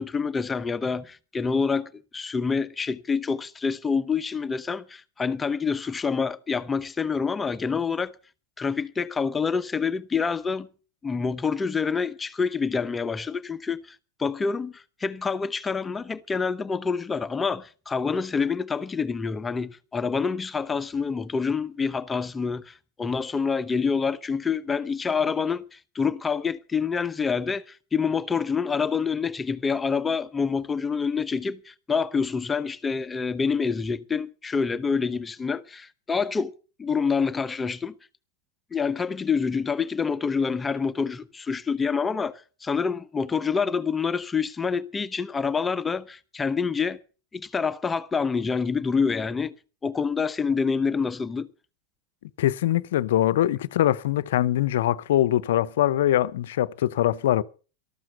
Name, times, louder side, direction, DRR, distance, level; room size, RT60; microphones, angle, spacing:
voice 1, 0.0-8.1 8.6-10.7 11.0-36.5 36.8-37.9 38.7-47.0 47.3-49.5 49.8-51.5, left 5 dB, 15° left, 0.8 m, -27 dB
voice 2, 52.4-57.4, left 13 dB, 55° left, 0.7 m, -23 dB
13.5 x 13.5 x 5.5 m
figure-of-eight pair, 90°, 0 cm